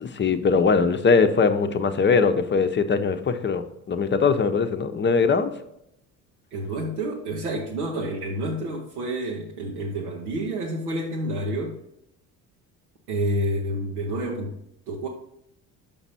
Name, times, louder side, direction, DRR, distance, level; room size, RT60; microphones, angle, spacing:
voice 1, 0.0-5.5, left 5 dB, 25° left, 9 dB, 0.7 m, -21 dB
voice 2, 6.5-11.8 13.1-14.5 14.9-15.1, right 1 dB, 90° right, -2 dB, 0.8 m, -29 dB
5.9 x 5.2 x 4.1 m, 0.78 s
hypercardioid pair, 55°, 44 cm